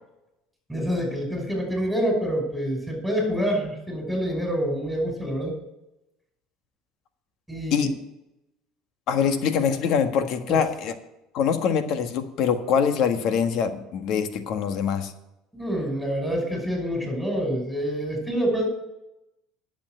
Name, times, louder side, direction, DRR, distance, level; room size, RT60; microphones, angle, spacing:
voice 1, 0.7-5.5 7.5-7.9 10.5-10.6 15.5-18.7, equal, ahead, 1 dB, 5.6 m, -27 dB
voice 2, 9.1-10.9 11.3-15.1, left 7 dB, 60° left, 8 dB, 1.6 m, -24 dB
10.5 x 7.4 x 7.9 m, 0.88 s
supercardioid pair, 105°, 0 cm